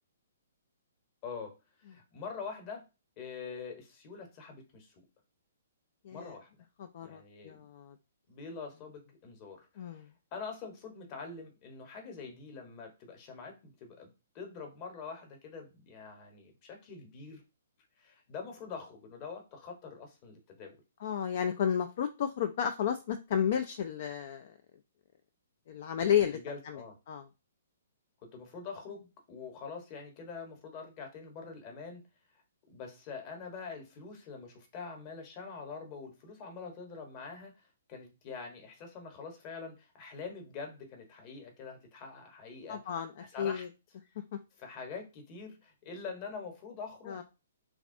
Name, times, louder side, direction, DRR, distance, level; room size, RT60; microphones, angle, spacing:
voice 1, 1.2-1.5 1.8-2.8 3.2-5.0 6.1-6.5 7.0-7.7 8.3-10.0 10.3-14.1 14.3-17.4 18.0-20.7 26.3-27.0 28.2-32.0 32.7-43.7 44.6-47.2, left 5 dB, 35° left, 3 dB, 1.0 m, -45 dB
voice 2, 6.8-7.9 9.8-10.1 21.0-24.5 25.7-26.4 26.7-26.8 27.1-27.2 42.7-43.1 43.4-43.7 44.2-44.3 47.1-47.2, left 9 dB, 50° left, 9 dB, 0.4 m, -32 dB
3.1 x 2.4 x 2.6 m, 0.29 s
figure-of-eight pair, 125°, 0 cm